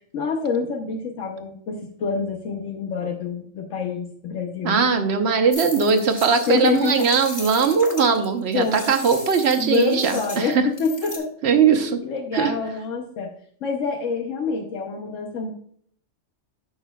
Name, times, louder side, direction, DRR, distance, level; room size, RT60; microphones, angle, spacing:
voice 1, 0.1-4.8 6.5-7.1 8.5-8.9 9.6-11.3 11.7-13.3 13.6-15.5, left 5 dB, 85° left, 3 dB, 1.2 m, -26 dB
voice 2, 4.6-10.6 11.4-12.0 12.3-12.5, right 6 dB, 60° right, 6 dB, 1.2 m, -20 dB
sound 1, 5.5-11.2, left 1 dB, 25° left, 1.9 m, -37 dB
11.5 x 6.2 x 2.3 m, 0.62 s
omnidirectional pair, 1.3 m